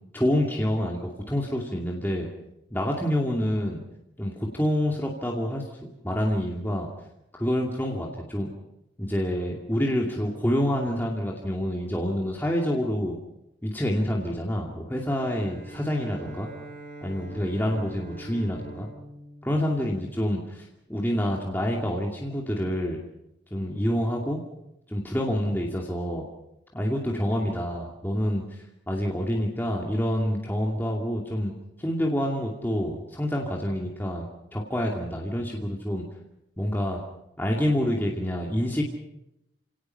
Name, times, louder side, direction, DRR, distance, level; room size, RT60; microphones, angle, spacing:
voice 1, 0.1-2.3 2.7-3.8 4.2-5.7 6.0-6.9 7.3-8.5 9.0-13.2 13.6-16.5 17.0-18.9 19.4-23.0 23.5-24.4 24.9-26.2 26.7-31.5 31.8-36.0 36.6-37.0 37.4-38.8, equal, 10° left, -1 dB, 2.5 m, -27 dB
Bowed string instrument, 15.0-20.5, right 1 dB, 30° right, 6.3 m, -44 dB
30.0 x 17.5 x 5.7 m, 0.85 s
head